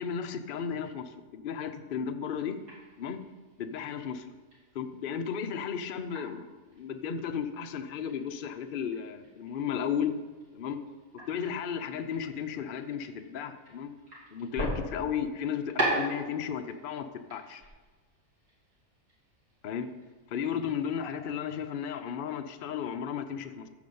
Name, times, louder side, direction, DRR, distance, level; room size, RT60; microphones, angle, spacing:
voice 1, 0.0-2.6 3.0-3.2 3.6-4.3 4.7-10.1 10.5-10.8 11.1-13.9 14.3-17.6 19.6-19.9 20.3-23.7, left 7 dB, 50° left, 7 dB, 0.7 m, -34 dB
sound 1, 2.3-22.1, right 1 dB, 70° right, 3.6 m, -41 dB
14.5 x 5.1 x 5.4 m, 1.4 s
omnidirectional pair, 1.6 m